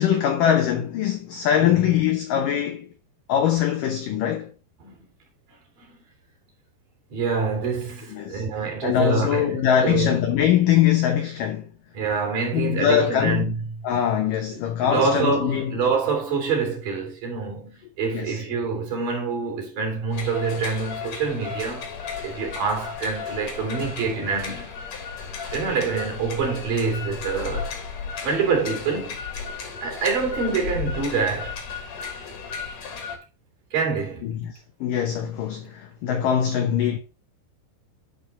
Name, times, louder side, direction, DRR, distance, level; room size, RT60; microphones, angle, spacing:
voice 1, 0.0-2.9 3.3-4.5 8.1-8.4 8.8-11.7 12.5-13.6 13.8-15.7 18.1-18.4 34.2-37.0, left 9 dB, 85° left, 1.9 m, -22 dB
voice 2, 7.1-10.2 11.9-13.5 14.5-21.9 22.2-24.7 25.5-27.7 28.2-29.2 29.8-31.6 33.7-34.4, right 5 dB, 50° right, 4.5 m, -26 dB
sound 1, 20.1-33.2, left 6 dB, 50° left, 2.2 m, -34 dB
11.0 x 5.0 x 4.2 m
omnidirectional pair, 5.3 m